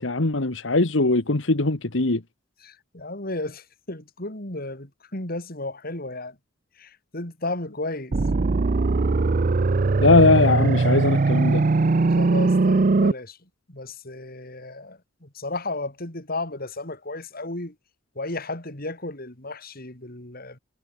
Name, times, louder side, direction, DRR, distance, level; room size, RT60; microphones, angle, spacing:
voice 1, 0.0-2.2 10.0-11.6, left 2 dB, 75° left, 1.6 m, -20 dB
voice 2, 2.6-6.4 6.8-8.1 12.1-13.4 13.7-17.7 18.2-20.6, left 2 dB, 50° left, 4.4 m, -34 dB
sound 1, 8.1-13.1, right 3 dB, 45° right, 0.5 m, -20 dB
head